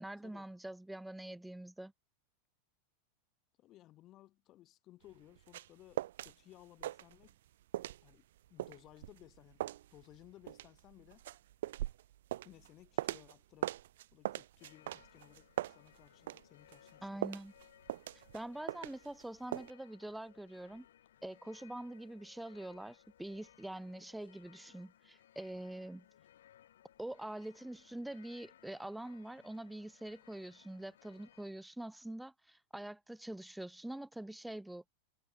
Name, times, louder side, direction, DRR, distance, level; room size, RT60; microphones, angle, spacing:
voice 1, 0.0-1.9 17.0-17.5 18.3-20.9 21.2-26.1 27.0-34.8, right 1 dB, 5° right, 0.6 m, -45 dB
voice 2, 3.6-7.4 8.0-8.2 8.5-11.2 12.4-13.7 14.1-17.2, left 15 dB, 35° left, 2.8 m, -60 dB
sound 1, 5.1-6.3 6.6-7.5 7.7-13.4 13.6-16.4 16.7-19.2 19.5-19.7, right 13 dB, 55° right, 0.7 m, -40 dB
sound 2, 14.6-31.5, left 11 dB, 60° left, 7.3 m, -64 dB
figure-of-eight pair, 90°, 0 cm